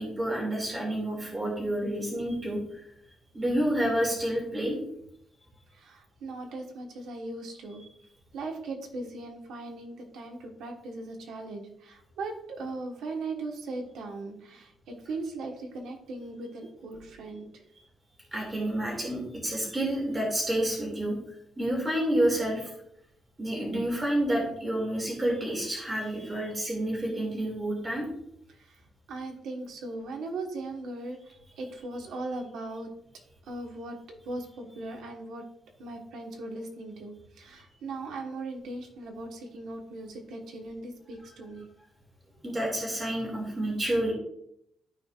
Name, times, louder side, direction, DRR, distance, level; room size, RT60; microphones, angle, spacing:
voice 1, 0.0-2.8 3.3-4.8 18.3-21.2 21.6-22.7 23.4-28.0 42.4-44.1, right 1 dB, 15° right, -2 dB, 2.5 m, -29 dB
voice 2, 5.7-7.8 8.3-17.6 28.6-28.8 29.1-31.2 31.6-32.9 33.4-35.4 35.8-41.7, right 2 dB, 80° right, 1 dB, 1.5 m, -38 dB
13.0 x 4.7 x 2.5 m, 0.75 s
cardioid pair, 175°, 0 cm